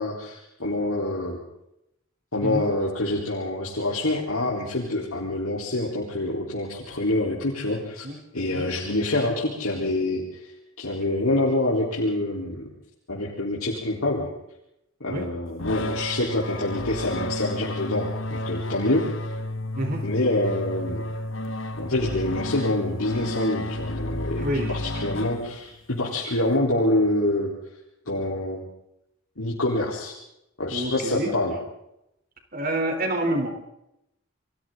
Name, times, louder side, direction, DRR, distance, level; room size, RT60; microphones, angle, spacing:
voice 1, 0.0-1.4 2.3-8.1 8.3-10.2 10.8-12.7 13.1-14.3 15.0-19.1 20.0-21.0 21.8-27.5 28.1-28.6 29.4-30.2 30.6-31.5, left 1 dB, 85° left, -4 dB, 4.0 m, -26 dB
sound 1, 15.6-25.9, left 1 dB, 65° left, 1.6 m, -32 dB
voice 2, 24.4-24.9 30.7-31.3 32.5-33.6, right 1 dB, 45° right, 4 dB, 3.8 m, -27 dB
29.0 x 23.0 x 3.9 m, 0.83 s
head